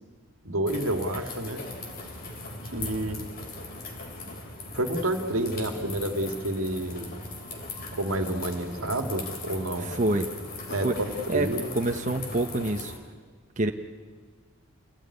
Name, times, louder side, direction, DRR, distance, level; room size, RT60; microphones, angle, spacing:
voice 1, 0.4-1.6 2.7-3.2 4.7-7.1 7.9-10.0 10.7-11.7, right 1 dB, 85° right, 6 dB, 2.0 m, -29 dB
sound 1, 0.7-13.0, left 2 dB, 45° left, 3.3 m, -39 dB
voice 2, 9.9-10.3 10.8-11.0 11.3-11.5 11.7-12.9 13.6-13.7, right 2 dB, 35° right, 4 dB, 1.1 m, -26 dB
28.5 x 16.5 x 9.8 m, 1.6 s
head